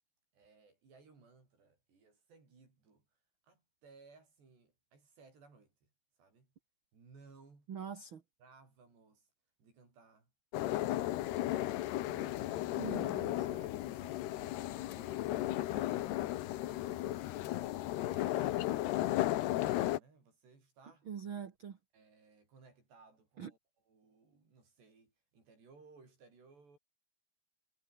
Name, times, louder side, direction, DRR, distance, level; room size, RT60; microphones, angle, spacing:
voice 1, 0.3-3.1 3.4-5.9 6.2-6.5 6.9-7.7 8.0-8.1 8.4-9.3 9.6-10.3 10.8-11.8 12.1-13.0 13.3-17.3 17.9-21.1 21.9-26.8, right 4 dB, 80° right, 10.5 m, -62 dB
voice 2, 7.7-8.2 12.8-13.4 21.1-21.8 23.4-23.5, right 7 dB, 50° right, 1.6 m, -43 dB
sound 1, 10.5-20.0, left 15 dB, 80° left, 3.2 m, -35 dB
omnidirectional pair, 4.8 m